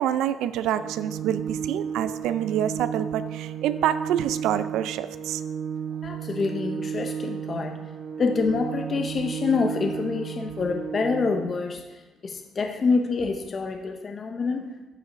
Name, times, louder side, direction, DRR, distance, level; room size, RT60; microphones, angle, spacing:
voice 1, 0.0-5.4, right 10 dB, 80° right, 13 dB, 0.3 m, -27 dB
Organ, 0.7-11.7, right 7 dB, 50° right, 0.7 m, -33 dB
voice 2, 6.0-7.9 8.2-14.7, left 4 dB, 30° left, 4 dB, 0.5 m, -27 dB
9.1 x 8.0 x 2.5 m, 1.2 s
cardioid pair, 155°, 0 cm